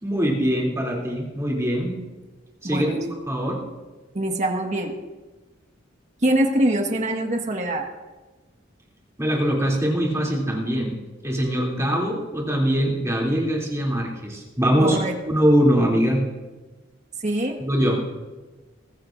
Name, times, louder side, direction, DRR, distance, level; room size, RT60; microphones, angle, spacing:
voice 1, 0.0-2.0 2.6-2.9 3.3-3.6 9.2-15.0 15.2-16.2 17.6-18.0, equal, 15° right, -3 dB, 2.9 m, -22 dB
voice 2, 2.6-3.1 4.1-4.9 6.2-7.8 14.8-15.1 17.2-17.6, right 1 dB, 40° right, 3 dB, 1.5 m, -23 dB
21.5 x 14.5 x 2.6 m, 1.2 s
head